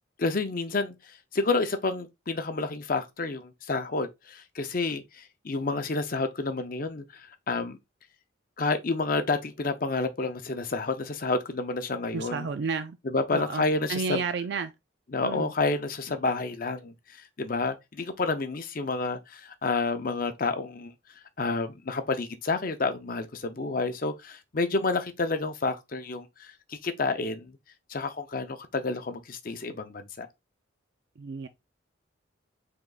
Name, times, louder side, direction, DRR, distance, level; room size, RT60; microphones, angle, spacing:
voice 1, 0.2-7.8 8.6-12.5 13.0-14.2 15.1-20.9 21.4-27.6 27.9-30.3, left 3 dB, 45° left, 0.6 m, -30 dB
voice 2, 12.1-13.0 13.3-13.6 13.9-14.7 15.2-15.5 31.2-31.5, right 5 dB, 55° right, 0.4 m, -31 dB
5.0 x 3.7 x 2.4 m
head